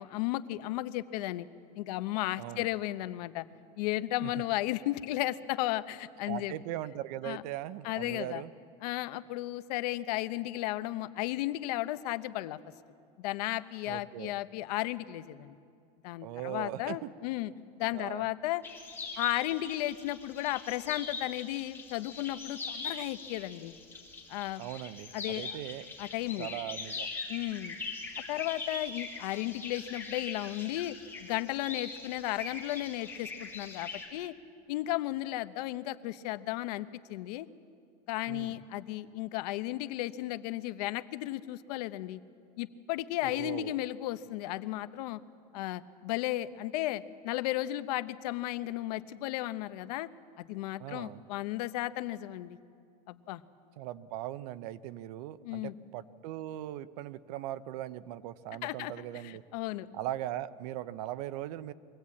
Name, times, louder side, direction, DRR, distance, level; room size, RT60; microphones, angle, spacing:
voice 1, 0.0-1.5 1.8-3.4 3.8-6.5 7.2-7.4 7.8-8.4 8.8-12.6 13.2-15.6 16.0-17.5 17.8-18.6 19.2-23.7 24.3-24.6 25.1-25.5 26.0-26.5 27.3-27.8 28.2-34.3 34.7-37.5 38.1-42.2 42.6-45.2 45.5-50.1 50.4-52.6 53.1-53.4 55.4-55.7 58.6-59.9, left 16 dB, 80° left, 13 dB, 0.8 m, -34 dB
voice 2, 2.4-2.7 4.2-4.3 6.3-8.5 13.9-14.4 16.2-17.1 17.9-18.2 24.6-25.9 26.4-27.1 38.3-38.6 43.2-43.7 50.8-51.2 53.8-59.4 59.9-61.7, right 13 dB, 75° right, 15 dB, 0.8 m, -39 dB
sound 1, 18.6-34.1, left 4 dB, 10° left, 3.6 m, -42 dB
23.0 x 17.0 x 8.5 m, 2.3 s
supercardioid pair, 150°, 20 cm